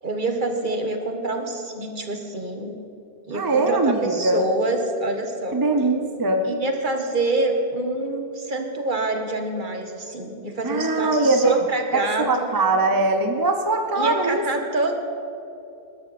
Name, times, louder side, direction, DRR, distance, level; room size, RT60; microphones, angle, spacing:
voice 1, 0.0-2.7 3.3-5.6 6.4-12.5 13.9-15.0, right 2 dB, 50° right, 4 dB, 1.6 m, -26 dB
voice 2, 3.3-4.4 5.5-6.4 10.6-11.5 11.9-14.4, right 2 dB, 20° right, 5 dB, 0.8 m, -21 dB
20.0 x 12.5 x 4.3 m, 2.8 s
omnidirectional pair, 1.0 m